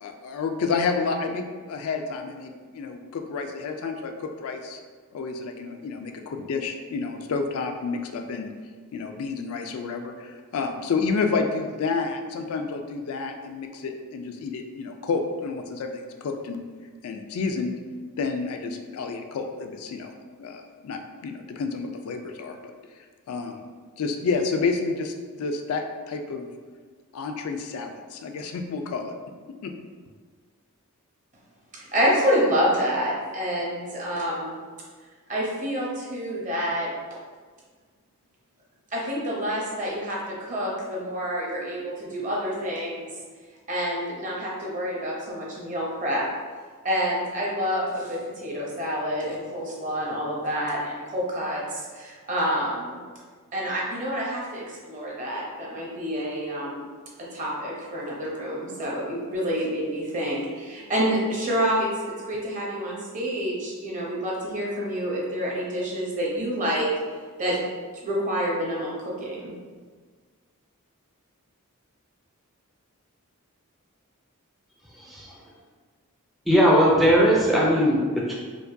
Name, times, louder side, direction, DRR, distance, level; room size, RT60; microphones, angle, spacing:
voice 1, 0.0-4.8 5.1-8.5 8.9-16.6 17.0-17.8 18.2-20.1 20.4-22.6 23.3-23.7 24.0-26.5 27.1-29.1 29.6-29.7, left 4 dB, 70° left, 5 dB, 0.3 m, -30 dB
voice 2, 31.7-34.6 35.3-36.9 38.9-43.1 43.7-46.3 46.8-53.0 53.5-56.9 57.3-66.9 67.4-67.6 68.0-69.5, equal, 35° right, -4 dB, 0.8 m, -28 dB
voice 3, 76.5-78.3, equal, ahead, -5 dB, 0.4 m, -19 dB
4.5 x 2.2 x 2.6 m, 1.5 s
head